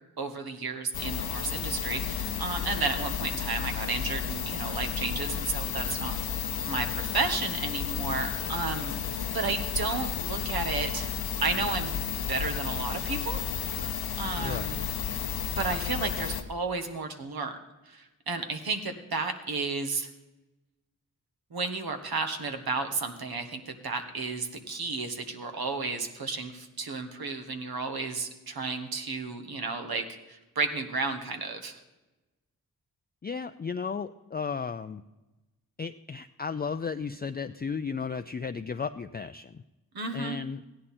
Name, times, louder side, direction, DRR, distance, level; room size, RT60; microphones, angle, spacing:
voice 1, 0.2-6.1 6.7-8.9 9.3-11.1 11.4-11.9 12.3-13.4 13.7-14.9 15.6-17.5 17.9-20.1 21.5-31.8 39.9-40.4, right 4 dB, 75° right, 6 dB, 1.4 m, -32 dB
sound 1, 0.9-16.4, left 8 dB, 80° left, 0.9 m, -32 dB
voice 2, 14.4-14.8 33.2-35.0 35.8-39.6 40.1-40.6, left 5 dB, 25° left, 10 dB, 0.4 m, -34 dB
15.5 x 10.5 x 4.3 m, 1.1 s
cardioid pair, 45°, 37 cm